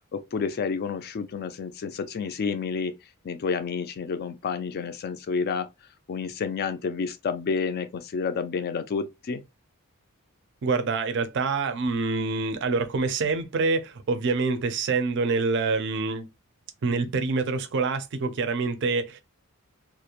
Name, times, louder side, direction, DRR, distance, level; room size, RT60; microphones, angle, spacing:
voice 1, 0.1-3.0 3.2-5.7 6.1-9.4, left 5 dB, 45° left, 0.3 m, -30 dB
voice 2, 10.6-16.3 16.8-19.2, right 4 dB, 55° right, 0.4 m, -26 dB
2.4 x 2.0 x 2.8 m
head